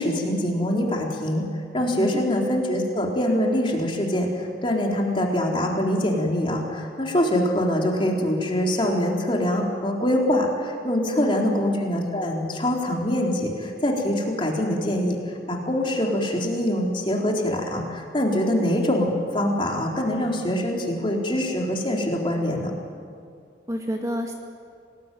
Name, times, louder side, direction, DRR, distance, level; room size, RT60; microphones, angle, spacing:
voice 1, 0.0-1.4 1.7-15.2 15.5-22.7, left 1 dB, 30° left, -1 dB, 3.9 m, -24 dB
voice 2, 11.2-11.5 23.7-24.3, equal, 20° right, 1 dB, 2.1 m, -28 dB
27.0 x 20.0 x 9.3 m, 2.3 s
head